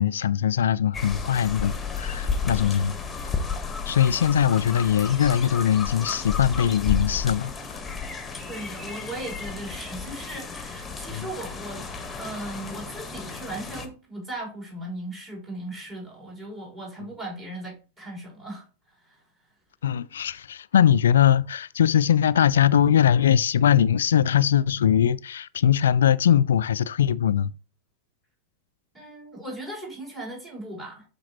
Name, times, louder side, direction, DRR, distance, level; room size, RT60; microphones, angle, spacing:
voice 1, 0.0-2.9 3.9-7.5 11.1-11.3 19.8-27.5, left 9 dB, 65° left, 0.3 m, -21 dB
sound 1, 0.9-13.9, left 5 dB, 15° left, 1.3 m, -32 dB
voice 2, 8.5-18.7 19.0-19.2 28.9-31.0, right 1 dB, 20° right, 4.2 m, -37 dB
12.0 x 4.4 x 3.0 m
figure-of-eight pair, 90°, 0 cm